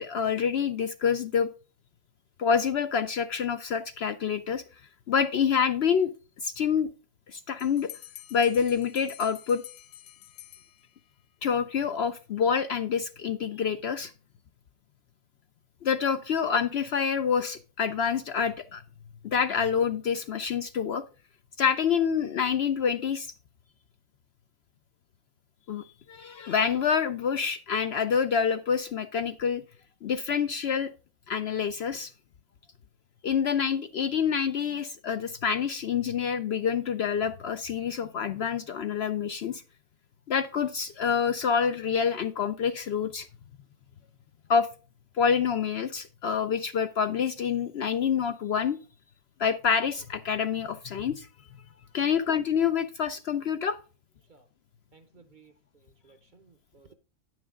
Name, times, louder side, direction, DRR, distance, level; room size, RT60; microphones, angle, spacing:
voice 1, 0.0-1.5 2.4-4.6 5.1-6.1 6.4-6.9 7.3-7.9 8.3-9.6 11.4-14.1 15.8-18.8 19.2-21.0 21.6-23.3 25.7-29.6 30.0-30.9 31.3-32.1 33.2-39.6 40.3-43.3 44.5-44.7 45.2-48.8 49.4-51.3 51.9-53.8, left 7 dB, 60° left, 0.7 m, -27 dB
Bell, 7.6-11.2, left 12 dB, 85° left, 1.2 m, -48 dB
voice 2, 54.9-56.9, right 5 dB, 45° right, 0.8 m, -58 dB
10.0 x 6.3 x 3.6 m
omnidirectional pair, 1.4 m